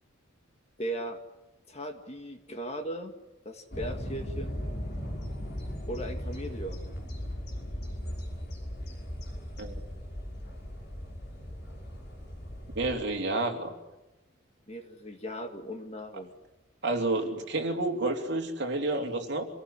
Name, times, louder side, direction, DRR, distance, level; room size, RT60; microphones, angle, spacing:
voice 1, 0.8-1.2 1.7-3.1 3.4-4.6 5.9-6.8 14.7-16.3, right 1 dB, 30° left, 5 dB, 2.2 m, -38 dB
sound 1, 3.7-13.0, equal, 50° left, 5.7 m, -38 dB
voice 2, 12.7-13.7 16.8-19.5, right 2 dB, 55° right, 2 dB, 3.3 m, -30 dB
27.0 x 18.5 x 10.0 m, 1.0 s
head